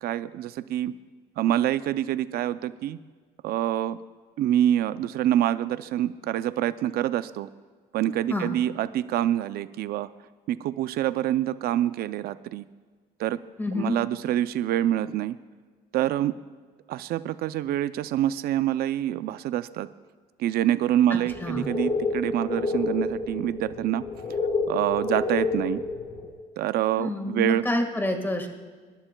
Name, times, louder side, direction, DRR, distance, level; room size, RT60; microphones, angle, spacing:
voice 1, 0.0-0.9 1.4-3.0 3.4-4.0 4.4-7.5 7.9-10.1 10.5-12.6 13.2-13.4 13.8-15.4 15.9-16.3 16.9-19.9 20.4-24.0 24.7-25.8 26.6-27.6, right 12 dB, 65° right, 14 dB, 0.5 m, -26 dB
voice 2, 13.6-14.0 21.4-21.7 27.0-28.5, left 1 dB, 10° left, 5 dB, 1.7 m, -27 dB
sound 1, 21.2-26.3, left 3 dB, 45° left, 2.2 m, -29 dB
24.5 x 11.5 x 2.3 m, 1.5 s
cardioid pair, 110°, 17 cm